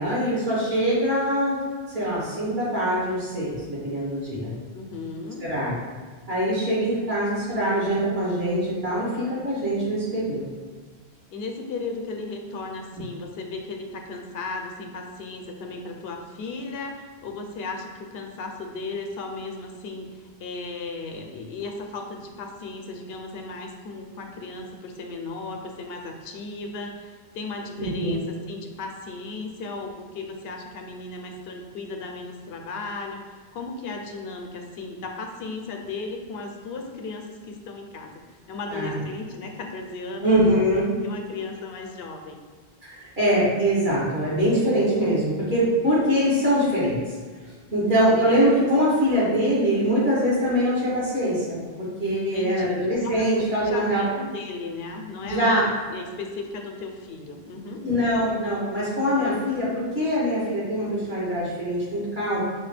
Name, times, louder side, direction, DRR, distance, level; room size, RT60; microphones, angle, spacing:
voice 1, 0.0-1.6 1.9-4.5 5.4-5.7 6.3-10.4 12.9-13.0 27.8-28.2 38.7-39.0 40.2-40.9 42.8-47.0 47.7-54.0 55.2-55.6 57.8-62.4, equal, 70° right, -8 dB, 1.7 m, -23 dB
voice 2, 4.7-5.4 11.3-38.2 38.5-40.3 41.0-42.4 52.1-52.7 53.0-55.5 55.9-57.8, left 3 dB, 75° left, 2 dB, 0.8 m, -35 dB
6.1 x 2.2 x 3.2 m, 1.5 s
omnidirectional pair, 1.1 m